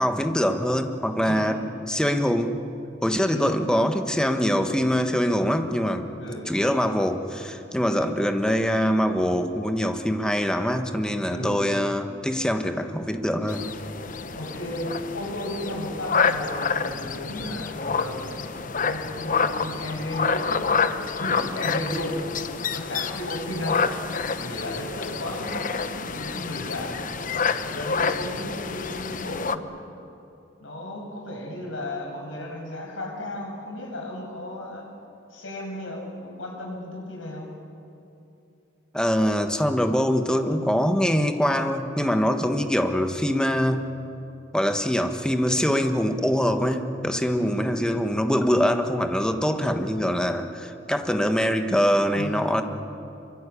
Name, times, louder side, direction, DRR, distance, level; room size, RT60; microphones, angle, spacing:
voice 1, 0.0-1.6 1.9-2.6 3.0-6.1 6.5-13.6 38.9-43.8 44.5-52.6, equal, 5° left, 6 dB, 1.4 m, -23 dB
voice 2, 1.2-1.6 3.3-3.6 6.2-6.5 7.9-8.1 11.3-11.6 14.3-20.7 21.2-22.3 22.7-27.0 27.7-29.6 30.6-34.9 35.3-37.5 47.4-47.8 49.5-49.7 52.1-52.4, left 1 dB, 80° left, 1 dB, 6.9 m, -34 dB
sound 1, 13.5-29.6, left 5 dB, 45° left, 0.9 m, -28 dB
26.0 x 24.0 x 8.5 m, 2.7 s
head